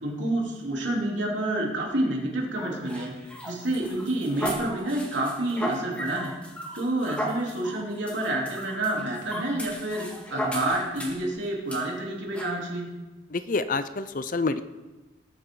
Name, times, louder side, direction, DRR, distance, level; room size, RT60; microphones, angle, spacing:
voice 1, 0.0-3.1 3.5-6.4 6.7-10.1 10.3-12.9, right 1 dB, 75° right, -2 dB, 3.5 m, -28 dB
sound 1, 2.6-11.3 11.7-11.8 12.3-12.5, equal, 5° left, 1.9 m, -35 dB
voice 2, 13.3-14.6, left 3 dB, 45° left, 12 dB, 0.5 m, -27 dB
19.5 x 9.0 x 3.9 m, 1.1 s
head